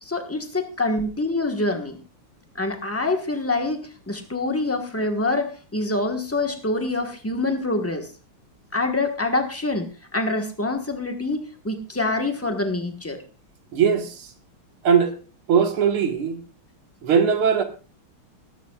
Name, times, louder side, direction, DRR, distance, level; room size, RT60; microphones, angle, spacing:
voice 1, 0.0-2.0 2.6-8.1 8.7-9.9 10.1-13.2, left 2 dB, 10° left, 0.9 m, -25 dB
voice 2, 13.7-14.3 14.8-15.1 15.5-16.4 17.0-17.6, right 7 dB, 80° right, 2.5 m, -20 dB
19.5 x 12.0 x 2.4 m
omnidirectional pair, 2.3 m